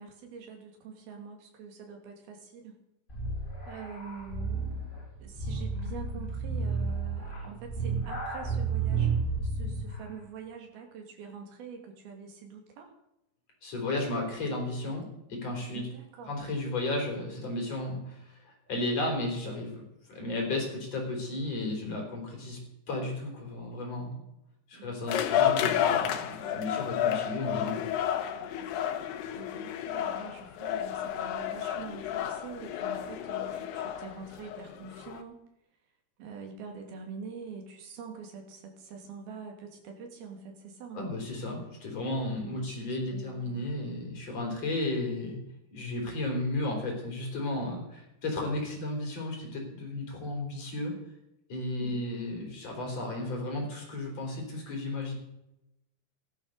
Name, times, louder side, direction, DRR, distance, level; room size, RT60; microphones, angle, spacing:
voice 1, 0.0-2.8 3.7-12.9 15.7-16.4 24.7-25.7 29.3-35.4 36.2-41.1 42.5-43.7 51.8-52.1, right 5 dB, 70° right, 3 dB, 4.5 m, -45 dB
sound 1, 3.1-10.0, right 4 dB, 15° left, 3.2 m, -32 dB
voice 2, 13.6-15.0 15.3-15.9 16.3-19.8 20.1-22.6 22.9-24.2 24.7-27.9 40.9-45.4 45.7-50.9 51.5-55.1, left 2 dB, 40° left, 1 dB, 5.1 m, -34 dB
sound 2, 25.1-35.2, left 10 dB, 85° left, 3.2 m, -31 dB
15.5 x 11.5 x 6.7 m, 0.87 s
omnidirectional pair, 4.5 m